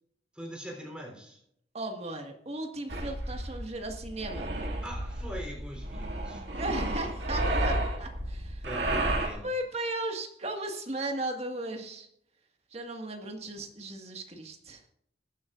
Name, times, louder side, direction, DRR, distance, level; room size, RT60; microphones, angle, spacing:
voice 1, 0.3-1.4 4.8-7.1 8.6-9.5, equal, 5° right, 0 dB, 3.6 m, -42 dB
voice 2, 1.7-4.5 6.5-8.7 9.4-12.1 12.7-14.8, right 1 dB, 35° right, 3 dB, 1.8 m, -36 dB
sound 1, 2.9-9.3, right 1 dB, 80° right, 2.3 m, -32 dB
21.0 x 10.5 x 2.5 m, 0.71 s
head